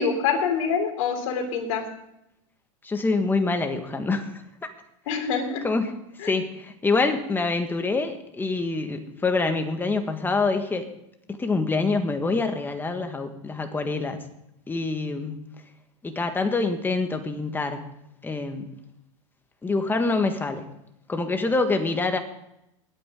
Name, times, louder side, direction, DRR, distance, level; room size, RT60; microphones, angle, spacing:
voice 1, 0.0-1.9 5.1-5.6 6.2-6.3, left 6 dB, 65° left, 3 dB, 3.5 m, -25 dB
voice 2, 2.8-4.3 5.6-5.8 6.2-10.9 11.3-14.2 14.7-15.4 16.0-17.8 18.2-18.7 19.6-20.7 21.1-22.2, left 3 dB, 10° left, 6 dB, 1.6 m, -25 dB
22.0 x 8.9 x 3.8 m, 0.80 s
hypercardioid pair, 125°, 17 cm